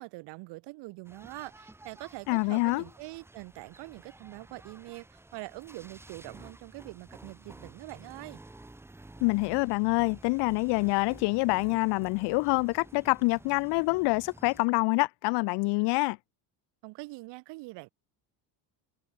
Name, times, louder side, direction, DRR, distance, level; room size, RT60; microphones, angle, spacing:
voice 1, 0.0-8.4 16.8-17.9, right 23 dB, 70° right, 2.6 m, -44 dB
sound 1, 1.0-14.7, right 2 dB, 5° right, 1.7 m, -51 dB
voice 2, 2.3-2.8 9.2-16.2, left 28 dB, 65° left, 0.6 m, -26 dB
cardioid pair, 175°, 44 cm